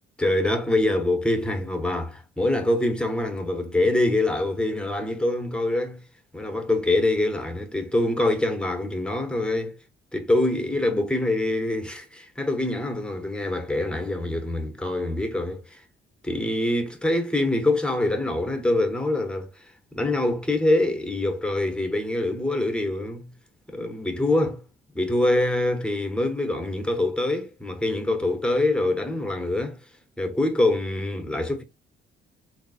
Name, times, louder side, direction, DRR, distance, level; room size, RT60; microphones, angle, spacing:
voice 1, 0.2-6.0 6.3-9.8 10.1-15.8 16.2-23.3 23.7-24.6 24.9-29.8 30.2-31.6, left 2 dB, 5° left, 1.1 m, -25 dB
3.4 x 2.8 x 4.1 m
cardioid pair, 90°, 20 cm